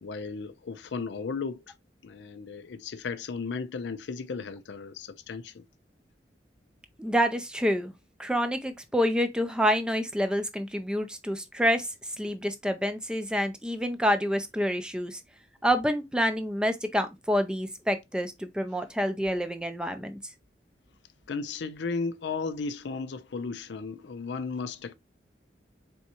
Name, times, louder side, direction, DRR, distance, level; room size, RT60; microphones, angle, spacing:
voice 1, 0.0-1.7 2.0-5.7 21.3-24.9, left 4 dB, 75° left, 0.5 m, -35 dB
voice 2, 7.0-7.9 8.2-15.2 15.6-20.2, equal, 5° right, 0.4 m, -27 dB
4.2 x 3.5 x 2.8 m
head